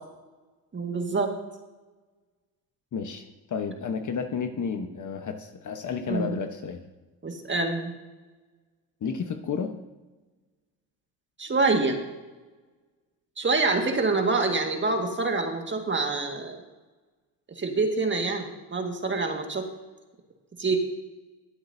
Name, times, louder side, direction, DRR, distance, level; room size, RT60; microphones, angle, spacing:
voice 1, 0.7-1.3 6.1-6.4 7.2-7.9 11.4-12.0 13.4-16.6 17.6-19.7 20.6-20.8, right 3 dB, 25° right, 3 dB, 1.8 m, -26 dB
voice 2, 2.9-6.8 9.0-9.7, left 6 dB, 40° left, 7 dB, 1.1 m, -31 dB
21.5 x 7.9 x 2.7 m, 1.2 s
supercardioid pair, 75°, 48 cm